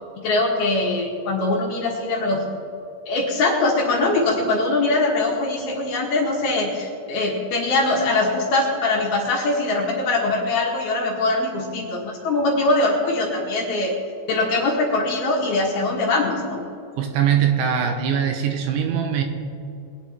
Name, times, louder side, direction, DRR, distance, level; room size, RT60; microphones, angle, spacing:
voice 1, 0.2-2.4 3.1-14.0 14.3-16.6, left 2 dB, 60° left, -2 dB, 3.1 m, -22 dB
voice 2, 17.0-19.2, right 8 dB, 75° right, 4 dB, 3.2 m, -21 dB
22.5 x 9.5 x 4.4 m, 2.6 s
omnidirectional pair, 5.7 m